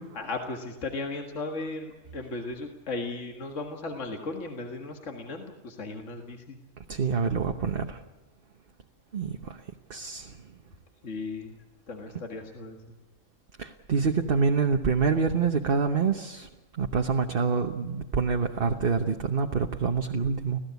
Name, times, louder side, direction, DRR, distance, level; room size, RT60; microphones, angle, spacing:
voice 1, 0.2-6.6 11.0-11.5 11.9-12.9, left 3 dB, 65° left, 3 dB, 2.1 m, -36 dB
voice 2, 6.9-8.0 9.1-9.4 9.9-10.3 13.6-16.5 16.8-20.6, right 5 dB, 45° right, 4 dB, 1.2 m, -26 dB
26.0 x 16.5 x 8.2 m, 1.1 s
omnidirectional pair, 1.4 m